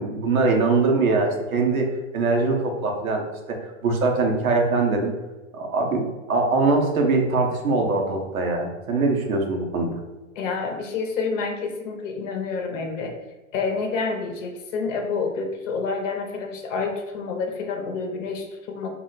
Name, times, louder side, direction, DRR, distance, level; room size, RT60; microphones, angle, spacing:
voice 1, 0.0-1.9 2.1-3.2 3.5-3.6 3.8-5.1 5.5-9.9, right 3 dB, 90° right, 1 dB, 0.8 m, -22 dB
voice 2, 10.4-13.1 13.5-18.9, left 4 dB, 65° left, 4 dB, 0.7 m, -28 dB
2.4 x 2.1 x 3.8 m, 1.1 s
hypercardioid pair, 110°, 41 cm